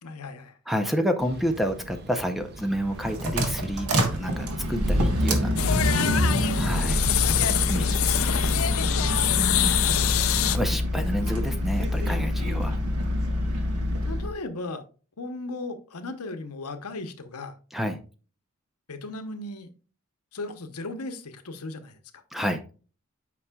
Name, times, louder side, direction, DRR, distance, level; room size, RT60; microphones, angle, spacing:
voice 1, 0.0-0.6 7.8-9.8 12.4-12.8 14.1-14.8 15.2-17.6 18.9-19.7 20.3-22.2, left 2 dB, 85° left, 0.9 m, -37 dB
voice 2, 0.7-5.5 6.6-7.1 7.7-8.3 9.3-9.8 10.5-12.8 17.7-18.0 22.3-22.6, equal, ahead, 0.6 m, -29 dB
sound 1, 1.2-10.3, right 1 dB, 45° right, 0.7 m, -43 dB
sound 2, 2.8-14.3, equal, 90° right, 1.4 m, -26 dB
sound 3, 5.6-10.6, left 10 dB, 65° left, 0.5 m, -25 dB
8.4 x 5.4 x 2.3 m
head